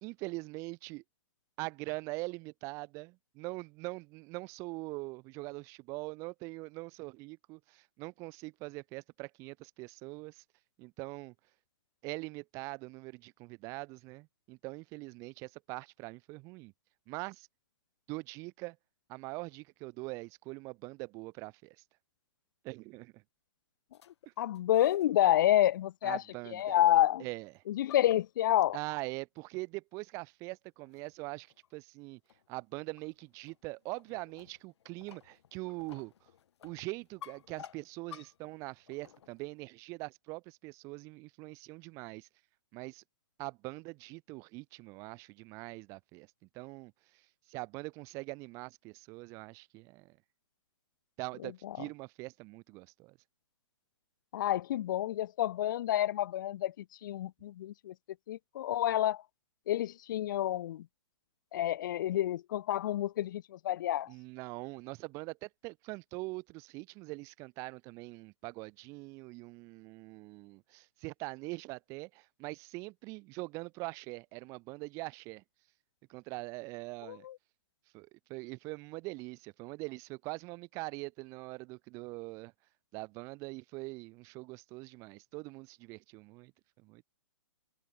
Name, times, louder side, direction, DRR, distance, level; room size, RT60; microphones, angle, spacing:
voice 1, 0.0-1.0 1.6-10.4 10.8-11.3 12.0-16.7 17.1-17.5 18.1-18.8 19.1-21.8 22.6-23.2 24.3-24.4 26.0-26.8 27.2-27.5 28.7-32.2 32.5-36.1 36.6-42.3 42.7-43.0 43.4-46.3 46.5-47.2 47.5-50.2 51.2-53.2 64.1-75.4 76.1-77.3 77.9-82.5 82.9-86.5 86.8-87.0, right 25 dB, 20° right, 0.5 m, -43 dB
sound 1, 23.9-25.2 25.6-25.9 26.6-27.2 27.5-28.9 29.6-29.7 30.2-30.3 30.9-31.2 31.5-31.7 32.3-39.7, left 9 dB, 65° left, 0.9 m, -55 dB
voice 2, 24.4-26.2 26.5-27.3 27.7-28.8 51.4-51.8 54.3-57.9 58.3-59.2 59.7-60.9 61.5-64.1 77.0-77.4, left 12 dB, 40° left, 0.4 m, -29 dB
hypercardioid pair, 155°, 15 cm